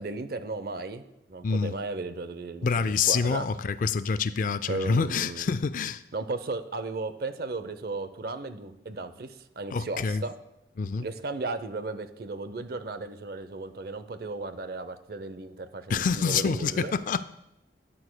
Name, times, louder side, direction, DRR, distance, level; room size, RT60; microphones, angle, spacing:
voice 1, 0.0-3.5 4.7-5.5 6.1-10.3 11.0-16.9, right 3 dB, 60° right, 0.6 m, -35 dB
voice 2, 1.4-1.7 2.6-6.0 9.7-10.2 10.8-11.0 15.9-17.2, left 5 dB, 45° left, 0.3 m, -27 dB
12.5 x 9.7 x 2.2 m
head